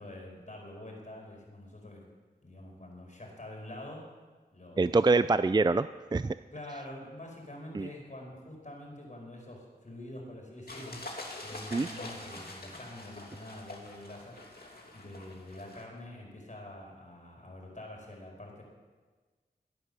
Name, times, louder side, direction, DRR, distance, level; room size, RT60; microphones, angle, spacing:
voice 1, 0.0-2.1 2.4-4.1 4.5-5.0 6.5-14.4 14.9-18.6, left 1 dB, 45° left, 0 dB, 4.8 m, -46 dB
voice 2, 4.8-6.4 7.7-7.9 11.7-11.9, right 3 dB, 25° right, 13 dB, 0.4 m, -25 dB
sound 1, 10.7-15.8, left 2 dB, 65° left, 2.6 m, -45 dB
16.5 x 10.5 x 6.9 m, 1.4 s
wide cardioid pair, 45°, 17 cm